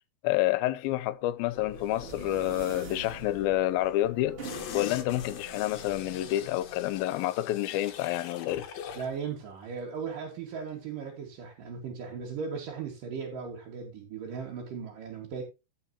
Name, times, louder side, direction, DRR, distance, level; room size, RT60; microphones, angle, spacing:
voice 1, 0.2-8.7, left 14 dB, 80° left, 2.4 m, -29 dB
sound 1, 1.4-7.2, right 5 dB, 35° right, 3.6 m, -47 dB
sound 2, 1.5-8.2, left 3 dB, 15° left, 2.5 m, -50 dB
sound 3, 4.4-9.2 9.5-9.6, left 8 dB, 65° left, 1.8 m, -43 dB
voice 2, 8.9-15.4, right 6 dB, 60° right, 3.4 m, -37 dB
16.0 x 6.6 x 2.9 m
omnidirectional pair, 4.5 m